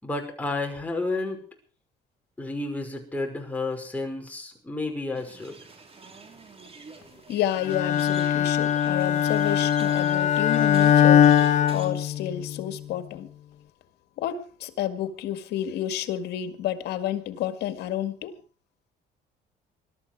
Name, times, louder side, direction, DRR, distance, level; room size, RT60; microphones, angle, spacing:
voice 1, 0.0-1.4 2.4-5.6, left 2 dB, 10° left, 5.5 m, -31 dB
sound 1, 5.1-11.9, right 3 dB, 35° right, 4.1 m, -45 dB
voice 2, 7.3-11.3 11.7-13.3 14.2-18.4, left 11 dB, 75° left, 2.0 m, -30 dB
Bowed string instrument, 7.6-12.6, left 9 dB, 45° left, 1.1 m, -21 dB
21.5 x 13.0 x 4.8 m
cardioid pair, 110°, 17 cm